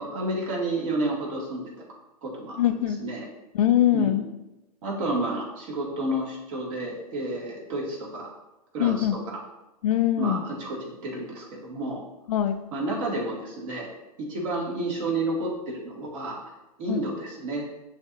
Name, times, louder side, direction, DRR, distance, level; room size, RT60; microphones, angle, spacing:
voice 1, 0.0-1.6 2.2-2.6 2.9-3.3 3.9-4.2 4.8-8.3 8.7-9.4 10.2-12.0 12.7-13.9 14.2-16.4 16.8-17.6, right 2 dB, 50° right, -3 dB, 2.2 m, -30 dB
voice 2, 2.6-3.0 3.5-4.2 8.8-9.2 9.8-10.4 12.3-12.6 16.9-17.0, left 11 dB, 65° left, 8 dB, 0.6 m, -22 dB
10.0 x 3.5 x 2.7 m, 0.96 s
figure-of-eight pair, 100°, 20 cm